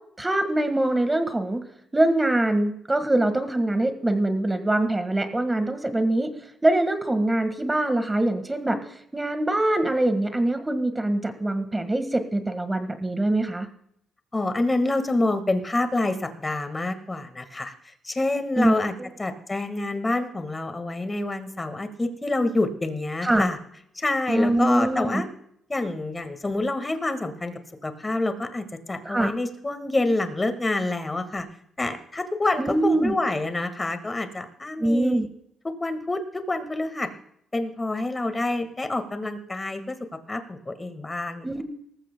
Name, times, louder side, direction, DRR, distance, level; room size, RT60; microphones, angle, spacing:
voice 1, 0.2-1.6 1.9-6.3 6.6-8.8 9.1-13.7 18.6-18.8 23.2-23.5 24.3-25.2 29.1-29.3 32.6-33.1 34.8-35.3 41.4-41.6, right 1 dB, 15° right, 9 dB, 1.7 m, -23 dB
voice 2, 14.3-17.7 18.0-18.9 19.2-23.6 24.0-25.3 25.7-27.5 27.8-31.5 31.8-35.3 35.8-37.1 37.5-40.0 40.3-41.5, left 2 dB, 20° left, 8 dB, 1.7 m, -27 dB
19.0 x 14.5 x 2.3 m, 0.71 s
cardioid pair, 90°, 0 cm